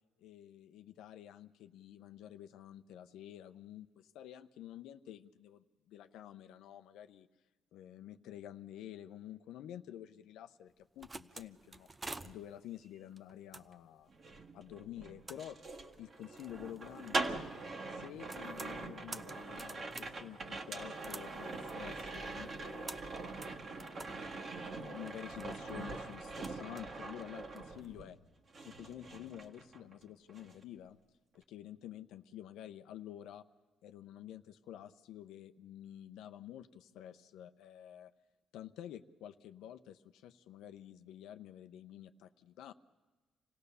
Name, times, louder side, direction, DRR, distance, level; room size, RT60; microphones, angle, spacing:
voice 1, 0.2-7.3 7.7-11.9 12.2-14.1 14.5-15.6 16.0-17.5 17.9-23.0 23.6-28.2 28.6-31.0 31.3-33.4 33.8-38.1 38.5-42.7, left 11 dB, 90° left, 9 dB, 0.6 m, -50 dB
sound 1, 10.7-27.9, right 3 dB, 25° right, 0.7 m, -53 dB
sound 2, 14.1-28.2 28.5-30.0 30.3-30.6, right 3 dB, 45° right, 1.7 m, -43 dB
26.0 x 16.5 x 6.8 m, 1.3 s
cardioid pair, 90°, 0 cm